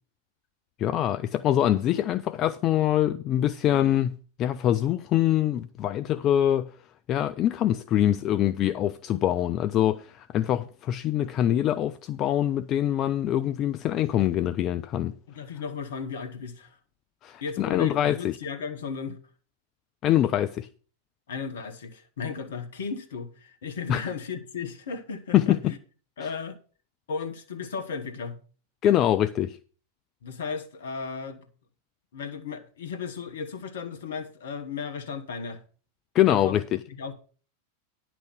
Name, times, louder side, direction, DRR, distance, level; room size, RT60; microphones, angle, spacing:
voice 1, 0.8-4.1 4.4-6.7 7.1-15.1 17.2-18.4 20.0-20.7 23.9-24.0 25.3-25.7 28.8-29.6 36.1-36.8, left 12 dB, 35° left, 0.4 m, -24 dB
voice 2, 15.3-16.8 17.4-19.2 21.3-25.6 26.2-26.6 27.1-28.4 30.2-31.5 32.1-35.6 36.3-36.6 36.9-37.1, left 5 dB, 60° left, 1.2 m, -35 dB
10.0 x 6.0 x 6.1 m
figure-of-eight pair, 90°, 0 cm